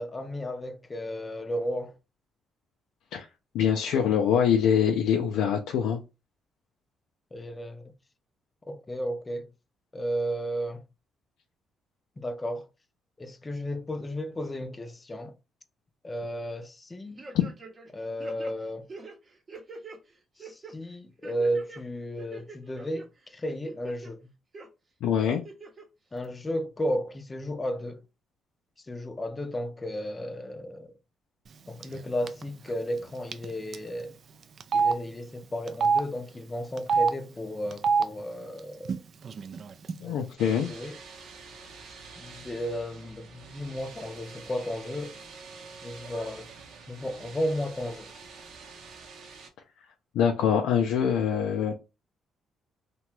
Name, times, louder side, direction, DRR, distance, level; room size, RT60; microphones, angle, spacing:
voice 1, 0.0-2.0 7.3-7.9 8.7-9.5 9.9-10.8 12.2-12.7 13.2-15.3 16.0-17.2 17.9-18.9 20.4-24.2 26.1-28.0 28.9-30.9 31.7-34.1 34.7-39.0 40.0-41.0 42.2-45.2 45.8-46.5 46.9-48.1, equal, 25° left, 0.5 m, -34 dB
voice 2, 3.5-6.0 25.0-25.4 40.0-40.7 50.1-51.7, left 8 dB, 90° left, 0.4 m, -24 dB
sound 1, 17.2-17.9 18.2-20.0 20.4-20.7 21.2-21.8 22.2-23.0 23.5-24.1 24.5-24.7 25.3-25.8 26.2-26.3, right 3 dB, 35° right, 0.7 m, -44 dB
Telephone, 31.8-32.0 32.3-32.4 33.3-33.5 33.7-33.8 34.6-34.9 35.7-36.0 36.8-37.1 37.7-38.0 38.9-39.0 39.2-39.9, right 5 dB, 50° right, 0.3 m, -24 dB
sound 2, 40.4-49.5, right 4 dB, 75° right, 0.7 m, -47 dB
2.8 x 2.2 x 3.0 m
cardioid pair, 90°, 0 cm